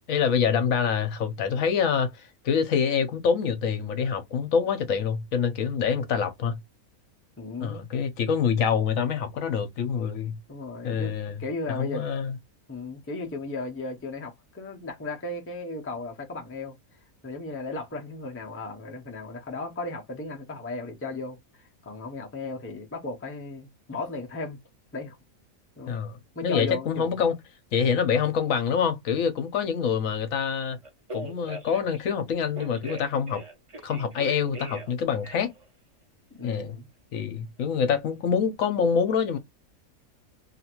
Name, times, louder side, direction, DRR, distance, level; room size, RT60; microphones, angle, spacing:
voice 1, 0.1-6.6 7.6-10.4 10.8-11.4 11.7-12.3 25.9-26.2 26.4-27.3 27.7-30.8 31.1-33.4 33.8-35.5 36.4-36.7 37.1-39.4, left 6 dB, 70° left, 1.1 m, -26 dB
voice 2, 7.4-7.8 10.1-12.1 12.7-16.8 17.2-24.6 24.9-25.2 25.8-25.9 26.3-27.1 36.3-36.9, left 3 dB, 15° left, 0.4 m, -36 dB
Telephone, 30.8-32.0 32.5-34.9 35.2-35.6, right 1 dB, 30° right, 0.8 m, -40 dB
2.8 x 2.5 x 2.9 m
omnidirectional pair, 1.5 m